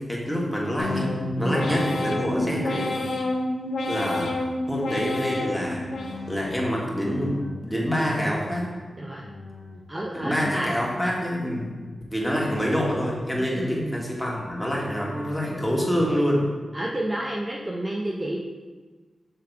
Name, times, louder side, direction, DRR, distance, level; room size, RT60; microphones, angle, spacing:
voice 1, 0.0-2.9 3.9-4.3 4.7-5.9 6.3-8.7 10.1-11.7 12.1-16.5, equal, 5° left, -4 dB, 1.5 m, -26 dB
sound 1, 0.8-6.6 7.0-7.7 8.1-8.8 9.2-9.9 10.3-10.9 11.4-11.9, left 2 dB, 85° left, 0.7 m, -30 dB
voice 2, 1.4-1.7 2.3-2.6 9.0-9.3 9.9-10.7 13.4-14.0 16.7-18.4, right 1 dB, 20° right, -2 dB, 0.6 m, -30 dB
6.7 x 3.4 x 4.5 m, 1.3 s
cardioid pair, 70°, 0 cm